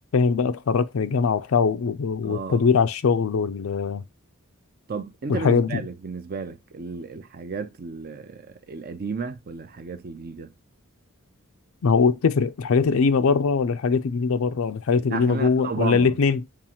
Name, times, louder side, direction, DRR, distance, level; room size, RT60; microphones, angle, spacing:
voice 1, 0.0-4.0 5.3-5.8 11.8-16.4, left 5 dB, 70° left, 0.4 m, -21 dB
voice 2, 2.2-2.7 4.9-10.5 15.1-16.2, right 4 dB, 45° right, 0.5 m, -33 dB
7.0 x 2.5 x 2.8 m
head